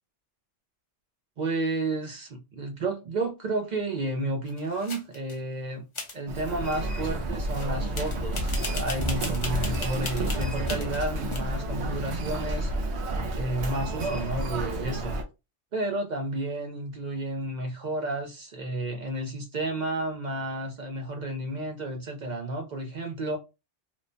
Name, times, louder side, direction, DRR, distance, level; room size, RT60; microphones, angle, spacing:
voice 1, 1.4-5.8 6.1-12.7 13.3-15.2 15.7-23.4, right 2 dB, 55° right, 0.5 m, -31 dB
sound 1, 4.4-5.4 5.9-6.2 7.6-7.7 8.0-11.4, left 3 dB, 35° left, 0.5 m, -37 dB
Human voice, 6.3-15.2, right 1 dB, 70° right, 0.9 m, -30 dB
3.0 x 2.1 x 2.5 m
omnidirectional pair, 1.2 m